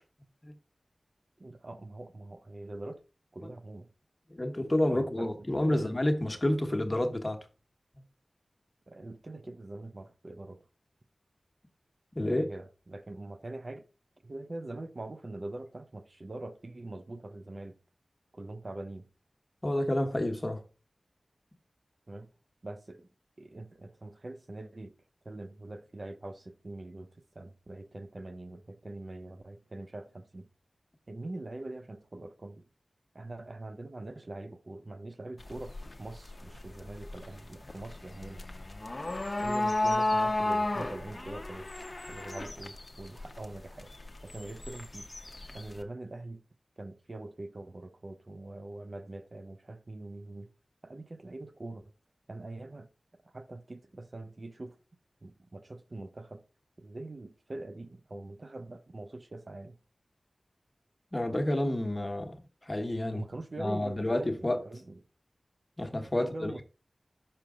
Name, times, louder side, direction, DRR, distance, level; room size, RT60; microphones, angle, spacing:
voice 1, 1.4-3.0 3.3-3.9 4.9-5.3 5.7-5.9 8.9-10.6 12.3-13.9 14.2-17.8 18.3-19.1 22.1-22.3 22.6-23.1 23.4-24.9 25.2-30.5 31.1-32.6 33.1-38.4 39.4-41.7 42.1-43.9 44.2-45.1 45.5-46.4 46.8-50.5 50.8-51.8 52.3-52.9 53.3-54.8 55.2-56.4 56.8-59.8 63.1-64.9 66.1-66.6, right 2 dB, 55° right, 0.6 m, -43 dB
voice 2, 4.3-7.5 12.1-12.5 19.6-20.6 61.1-62.4 62.6-63.3 63.6-64.6 65.8-66.6, left 1 dB, 30° left, 1.2 m, -29 dB
sound 1, 35.4-45.8, left 2 dB, 45° left, 0.7 m, -34 dB
5.9 x 4.9 x 3.7 m
cardioid pair, 40°, 0 cm